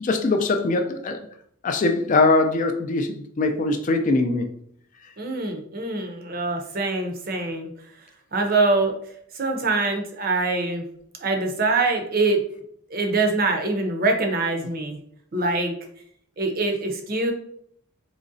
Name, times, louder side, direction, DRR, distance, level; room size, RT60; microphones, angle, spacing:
voice 1, 0.0-1.2 1.6-4.4, left 3 dB, 35° left, 6 dB, 0.3 m, -22 dB
voice 2, 5.2-7.7 8.3-8.9 9.3-10.9 11.2-12.4 12.9-15.0 15.3-15.7 16.4-17.3, right 3 dB, 45° right, 3 dB, 0.6 m, -24 dB
3.8 x 3.0 x 2.6 m, 0.66 s
head